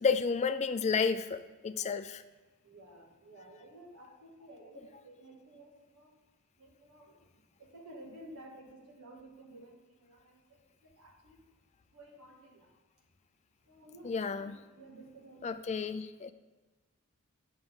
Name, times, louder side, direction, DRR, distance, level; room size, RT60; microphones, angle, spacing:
voice 1, 0.0-2.2 14.0-14.6 15.4-16.3, left 5 dB, 30° left, 11 dB, 0.4 m, -31 dB
voice 2, 2.6-6.1 6.6-7.2 7.6-10.4 11.0-11.4 11.9-12.7 13.7-15.5, right 1 dB, 80° right, -2 dB, 2.0 m, -53 dB
8.9 x 6.3 x 3.8 m, 1.2 s
head